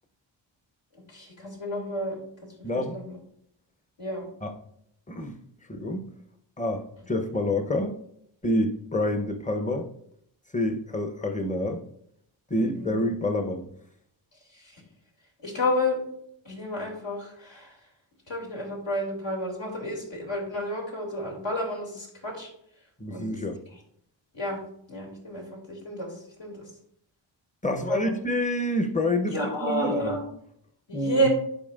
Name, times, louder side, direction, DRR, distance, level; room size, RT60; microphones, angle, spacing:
voice 1, 1.1-2.2 2.7-3.2 4.0-4.2 12.6-12.9 14.5-14.8 15.4-16.0 16.4-17.8 18.3-22.5 23.1-23.3 24.3-24.6 24.9-26.6 27.9-28.1 29.3-30.3 30.9-31.3, equal, 65° left, -2 dB, 2.8 m, -30 dB
voice 2, 2.6-3.0 4.4-4.5 5.1-5.4 5.7-6.1 6.6-8.0 8.4-9.9 10.5-11.8 12.5-13.7 23.0-23.6 27.6-30.2 30.9-31.3, left 1 dB, 15° left, 7 dB, 0.9 m, -27 dB
11.0 x 4.4 x 2.5 m, 0.71 s
cardioid pair, 60°, 48 cm